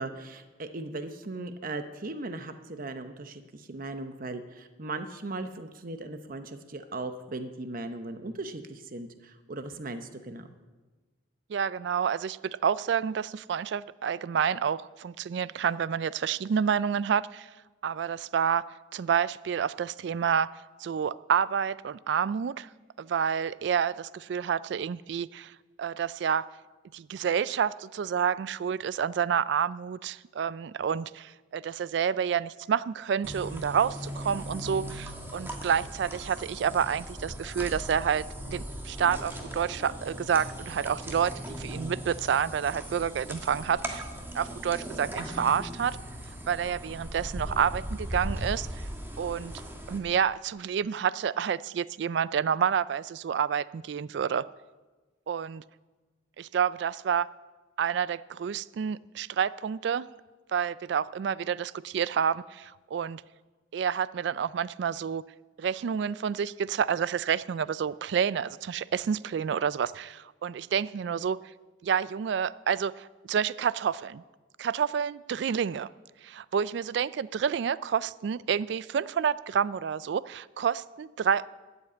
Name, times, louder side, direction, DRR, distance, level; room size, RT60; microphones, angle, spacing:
voice 1, 0.0-10.5, right 2 dB, 45° right, 9 dB, 0.8 m, -38 dB
voice 2, 11.5-17.5 17.8-20.5 20.8-22.7 23.0-25.5 25.8-26.5 26.9-44.0 44.3-46.0 46.5-48.9 49.2-49.5 49.9-54.5 55.3-55.6 56.4-57.3 57.8-60.1 60.5-63.2 63.7-65.2 65.6-71.4 71.8-74.2 74.6-75.9 76.2-81.5, right 7 dB, 65° right, 19 dB, 0.3 m, -29 dB
sound 1, 33.2-50.0, equal, 10° right, 1.5 m, -38 dB
13.0 x 8.2 x 8.5 m, 1.2 s
head